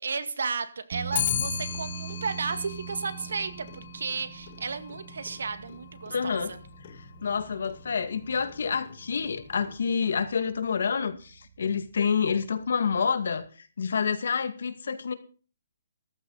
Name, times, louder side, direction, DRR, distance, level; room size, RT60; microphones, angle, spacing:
voice 1, 0.0-6.6, right 4 dB, 80° right, 10 dB, 2.1 m, -33 dB
sound 1, 0.9-13.4, right 9 dB, 35° right, 1.4 m, -44 dB
Clock, 1.1-10.5, left 10 dB, 35° left, 1.4 m, -38 dB
voice 2, 6.1-6.5 7.2-13.5 13.8-15.1, left 6 dB, 65° left, 9 dB, 2.1 m, -28 dB
14.5 x 13.0 x 4.2 m, 0.38 s
hypercardioid pair, 175°, 0 cm